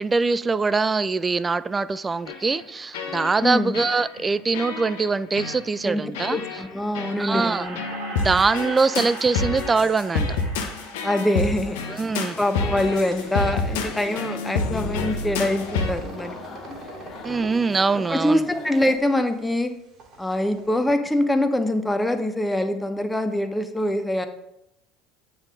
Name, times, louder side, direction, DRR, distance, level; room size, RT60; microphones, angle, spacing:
voice 1, 0.0-6.4 7.2-7.7 8.2-10.4 11.9-12.4 17.2-18.4, right 4 dB, 20° right, 0.4 m, -23 dB
sound 1, 2.3-2.6 2.9-3.5 3.7-4.2 4.5-5.0 5.3-5.6 6.1-6.6 6.9-7.2 7.8-15.9, left 4 dB, 70° left, 0.9 m, -28 dB
voice 2, 3.4-3.7 5.8-6.0 6.3-7.8 11.0-11.8 12.4-16.4 18.1-19.7 20.2-24.3, left 1 dB, 10° left, 0.9 m, -24 dB
sound 2, 7.3-12.3 12.8-14.6 15.3-17.6 18.2-19.7 19.9-20.6, right 3 dB, 50° right, 2.9 m, -40 dB
sound 3, 11.1-19.0, left 4 dB, 45° left, 1.9 m, -41 dB
8.8 x 5.6 x 3.8 m
hypercardioid pair, 70°, 0 cm